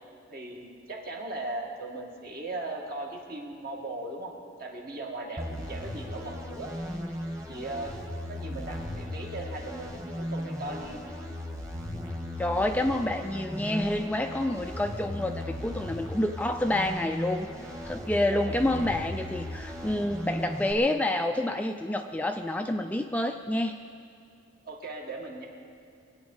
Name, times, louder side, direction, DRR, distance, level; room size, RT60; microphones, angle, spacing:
voice 1, 0.3-4.3 4.6-6.7 7.5-7.9 8.3-11.0 18.3-18.5 24.7-25.5, right 2 dB, 50° right, 0 dB, 1.9 m, -38 dB
sound 1, 5.4-20.7, left 1 dB, 15° right, 1.4 m, -37 dB
voice 2, 12.4-17.5 17.8-23.8, left 1 dB, 10° left, 5 dB, 0.3 m, -28 dB
23.0 x 8.9 x 5.6 m, 2.4 s
head